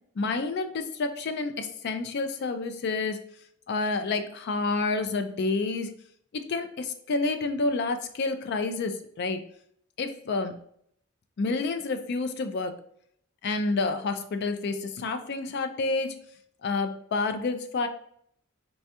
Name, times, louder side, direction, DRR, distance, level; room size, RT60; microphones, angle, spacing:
voice 1, 0.2-3.2 3.7-5.9 6.3-9.4 10.0-10.5 11.4-12.7 13.4-16.1 16.6-17.9, left 3 dB, 50° left, 8 dB, 0.3 m, -29 dB
4.2 x 2.3 x 2.8 m, 0.65 s
head